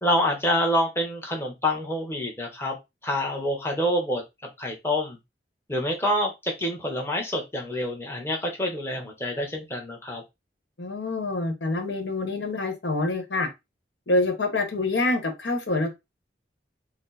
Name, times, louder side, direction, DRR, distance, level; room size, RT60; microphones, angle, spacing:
voice 1, 0.0-2.8 3.0-4.2 4.6-5.2 5.7-10.2, left 1 dB, 15° left, 1 dB, 0.9 m, -27 dB
voice 2, 10.8-13.5 14.1-15.9, left 2 dB, 80° left, 4 dB, 1.1 m, -26 dB
4.4 x 2.0 x 4.0 m, 0.22 s
head